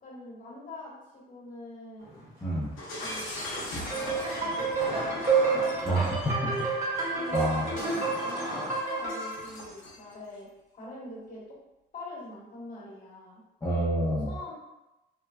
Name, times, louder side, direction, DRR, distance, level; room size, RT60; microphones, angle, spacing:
voice 1, 0.0-2.2 3.0-5.2 5.5-6.1 7.1-10.5 10.7-11.4 11.9-13.4 14.0-14.5, left 2 dB, 45° left, -5 dB, 1.3 m, -44 dB
sound 1, 2.0-8.8, equal, 80° right, 1.4 m, -42 dB
voice 2, 2.4-2.7 5.8-6.5 7.3-7.6 13.6-14.3, right 1 dB, 15° left, -8 dB, 0.6 m, -28 dB
Shatter, 2.8-10.1, left 1 dB, 90° left, 0.8 m, -41 dB
sound 2, 3.9-9.4, right 4 dB, 35° right, 1.4 m, -29 dB
3.4 x 2.2 x 2.3 m, 0.97 s
cardioid pair, 90°, 20 cm